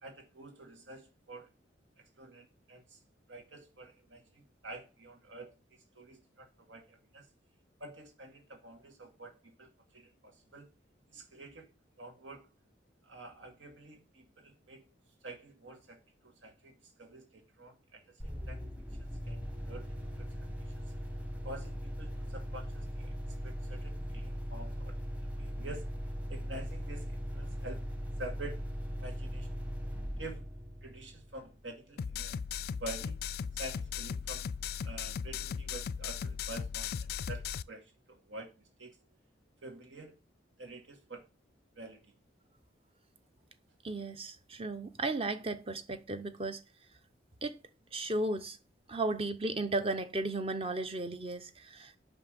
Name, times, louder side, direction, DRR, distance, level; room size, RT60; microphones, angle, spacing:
voice 1, 0.0-1.5 2.0-3.0 3.3-5.5 6.0-7.3 7.8-10.7 11.1-11.7 12.0-12.5 13.0-14.9 15.2-18.6 19.0-20.3 20.7-20.9 21.4-25.0 25.4-25.9 26.3-27.8 28.2-28.6 29.0-29.5 30.2-30.5 30.8-32.4 32.7-33.3 33.6-34.5 34.8-36.9 37.3-38.5 38.8-39.0 39.6-40.2 40.6-41.3 41.7-42.1, right 2 dB, 85° right, 2.2 m, -48 dB
sound 1, 18.2-31.7, equal, 10° right, 1.0 m, -39 dB
sound 2, 32.0-37.6, left 7 dB, 55° left, 0.3 m, -37 dB
voice 2, 43.8-46.6 47.4-47.6 47.9-48.6 48.9-52.0, right 2 dB, 30° right, 0.8 m, -35 dB
5.9 x 5.5 x 6.4 m
head